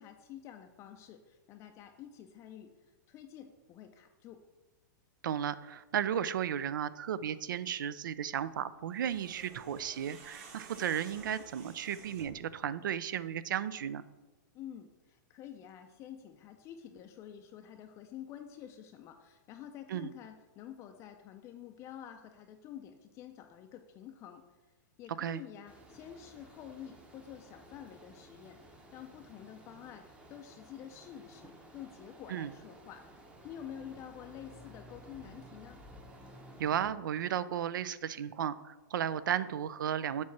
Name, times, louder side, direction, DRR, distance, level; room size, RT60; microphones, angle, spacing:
voice 1, 0.0-2.7 3.1-4.4 14.5-24.4 25.0-33.0 33.4-35.8, left 10 dB, 25° left, 6 dB, 0.4 m, -49 dB
voice 2, 5.2-14.0 19.9-20.1 25.2-25.4 32.3-32.5 36.6-40.2, right 9 dB, 90° right, 16 dB, 0.4 m, -34 dB
sound 1, 8.9-12.5, right 4 dB, 45° right, 1.3 m, -52 dB
sound 2, 25.7-36.8, right 1 dB, 10° right, 0.7 m, -55 dB
7.3 x 3.1 x 5.8 m, 1.1 s
hypercardioid pair, 145°, 10 cm